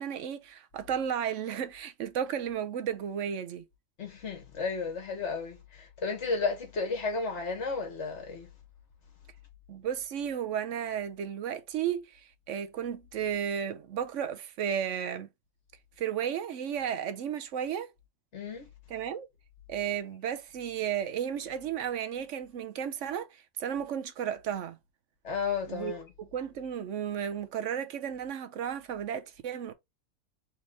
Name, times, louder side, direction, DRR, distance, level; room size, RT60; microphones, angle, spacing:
voice 1, 0.0-3.6 9.7-15.3 16.0-17.9 18.9-19.3 19.7-24.8 25.7-29.7, right 9 dB, 65° right, 0.9 m, -33 dB
voice 2, 4.0-8.5 18.3-18.7 25.2-26.0, left 4 dB, 50° left, 1.9 m, -33 dB
4.1 x 3.3 x 3.9 m
omnidirectional pair, 1.6 m